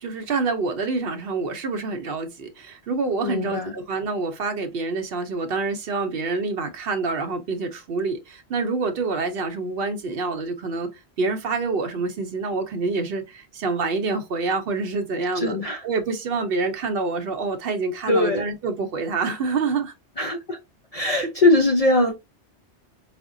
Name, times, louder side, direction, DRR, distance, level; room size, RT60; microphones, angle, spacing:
voice 1, 0.0-10.9 11.2-19.9 21.2-21.3, right 4 dB, 60° right, 0.8 m, -27 dB
voice 2, 3.2-3.7 15.3-15.8 18.1-18.4 20.2-20.6 20.9-22.1, left 2 dB, 50° left, 0.4 m, -21 dB
4.9 x 2.1 x 2.5 m
omnidirectional pair, 1.2 m